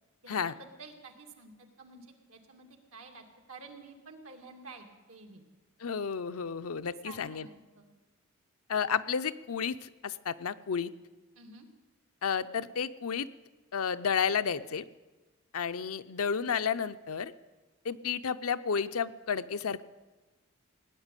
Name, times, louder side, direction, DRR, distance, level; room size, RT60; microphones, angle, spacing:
voice 1, 0.2-1.5 1.8-5.5 7.0-7.9 11.4-11.7, right 3 dB, 80° right, 3 dB, 2.2 m, -50 dB
voice 2, 5.8-7.5 8.7-10.9 12.2-13.3 13.7-14.8 15.5-17.3 17.8-19.8, left 6 dB, 85° left, 12 dB, 0.6 m, -31 dB
18.0 x 9.7 x 8.2 m, 1.2 s
head